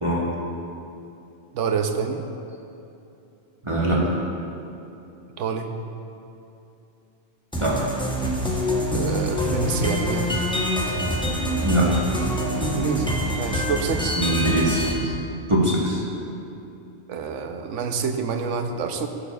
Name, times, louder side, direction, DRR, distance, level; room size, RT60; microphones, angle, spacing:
voice 1, 1.5-2.2 5.4-5.7 8.9-10.4 12.6-14.2 17.1-19.1, right 6 dB, 85° right, 6 dB, 1.0 m, -27 dB
voice 2, 3.6-4.0 7.6-7.8 11.6-11.9 14.1-15.1 15.5-16.0, right 1 dB, 25° right, -6 dB, 1.1 m, -22 dB
sound 1, 7.5-14.9, equal, 5° left, 0.7 m, -25 dB
15.0 x 6.5 x 2.3 m, 2.8 s
omnidirectional pair, 1.2 m